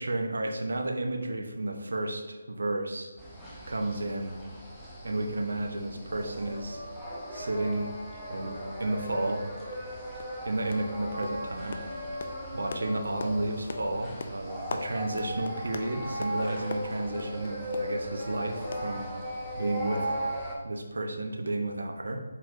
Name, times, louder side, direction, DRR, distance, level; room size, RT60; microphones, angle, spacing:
voice 1, 0.0-3.1 3.7-4.4 5.0-6.8 7.3-7.9 8.3-9.5 10.4-11.8 12.5-19.0 19.6-20.1 20.6-22.2, right 2 dB, 65° right, 3 dB, 0.6 m, -32 dB
sound 1, 3.2-20.6, equal, ahead, 0.6 m, -38 dB
sound 2, 9.2-9.3 9.7-9.9 10.2-10.4 10.7-11.0 11.2-18.4 18.7-19.5 19.7-19.9 20.2-20.3, left 4 dB, 45° left, 0.3 m, -43 dB
4.1 x 4.0 x 2.5 m, 1.3 s
figure-of-eight pair, 150°, 0 cm